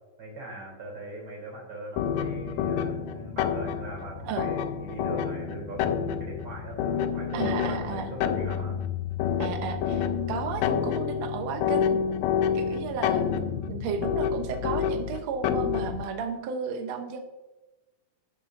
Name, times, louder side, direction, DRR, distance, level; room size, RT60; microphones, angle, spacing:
voice 1, 0.2-8.8, right 1 dB, 35° right, -2 dB, 4.1 m, -40 dB
sound 1, 2.0-16.1, left 8 dB, 80° left, 2.1 m, -29 dB
voice 2, 7.3-8.1 9.4-12.0 12.5-17.2, right 6 dB, 70° right, 6 dB, 1.7 m, -33 dB
13.0 x 6.8 x 2.7 m, 1.1 s
omnidirectional pair, 4.1 m